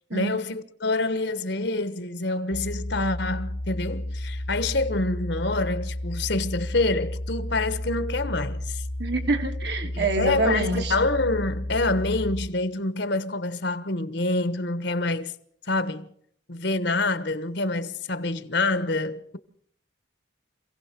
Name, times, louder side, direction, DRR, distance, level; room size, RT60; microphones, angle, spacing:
voice 1, 0.1-8.8 9.9-15.3 15.7-16.1 16.5-19.4, left 2 dB, 60° left, 1.3 m, -27 dB
sound 1, 2.5-12.5, left 1 dB, 40° left, 0.9 m, -32 dB
voice 2, 9.0-10.9, right 2 dB, 55° right, 2.5 m, -26 dB
27.0 x 16.5 x 6.0 m
head